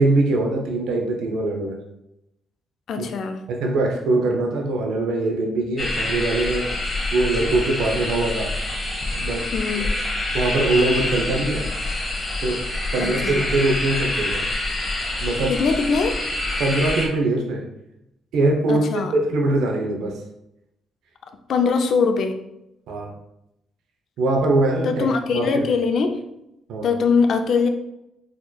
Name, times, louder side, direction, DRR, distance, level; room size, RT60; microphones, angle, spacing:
voice 1, 0.0-1.8 3.0-3.1 3.5-6.7 7.1-8.5 9.1-9.5 9.8-9.9 10.3-11.7 12.4-12.6 12.9-14.5 15.2-15.5 16.6-17.6 18.3-18.9 19.1-20.2 22.9-23.1 24.2-25.6 26.7-26.9, right 2 dB, 85° right, 1 dB, 0.6 m, -22 dB
voice 2, 2.9-3.4 9.5-9.9 13.0-13.4 15.5-16.2 18.7-19.1 21.5-22.4 24.8-26.2 26.8-27.7, left 5 dB, 65° left, 7 dB, 0.4 m, -22 dB
sound 1, 5.8-17.1, left 2 dB, 25° left, 1.0 m, -26 dB
4.2 x 3.0 x 2.3 m, 0.84 s
cardioid pair, 90°, 0 cm